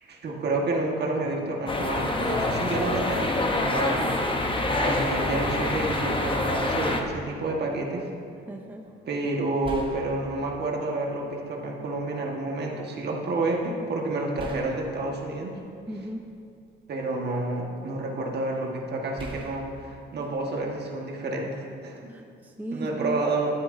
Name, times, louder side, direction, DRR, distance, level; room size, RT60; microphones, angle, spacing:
voice 1, 0.0-4.1 4.8-8.1 9.1-15.6 16.9-22.3 22.7-23.5, right 2 dB, 55° right, 0 dB, 1.5 m, -29 dB
sound 1, 1.7-7.0, left 2 dB, 25° left, 0.9 m, -26 dB
voice 2, 8.5-8.9 15.9-16.3 22.1-23.2, right 1 dB, 10° right, 2 dB, 0.7 m, -36 dB
sound 2, 8.9-9.0 9.6-10.9 11.8-12.0 14.4-16.5 17.1-18.0 19.2-21.2, right 2 dB, 25° right, 1.1 m, -43 dB
12.0 x 8.9 x 2.6 m, 2.4 s
cardioid pair, 90°, 20 cm